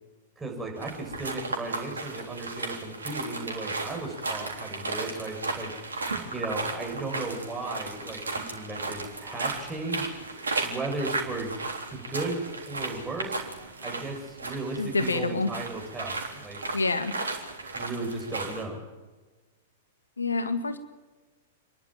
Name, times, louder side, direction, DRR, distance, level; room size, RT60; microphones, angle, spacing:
voice 1, 0.4-5.7 6.3-11.6 11.9-13.4 13.8-16.6 17.7-18.8, right 2 dB, 10° right, 0 dB, 7.0 m, -35 dB
sound 1, 0.8-18.6, right 3 dB, 85° right, 3.7 m, -35 dB
voice 2, 14.8-15.5 16.7-17.1 20.2-20.8, left 3 dB, 90° left, 10 dB, 1.8 m, -27 dB
29.0 x 12.0 x 7.5 m, 1.3 s
hypercardioid pair, 105°, 0 cm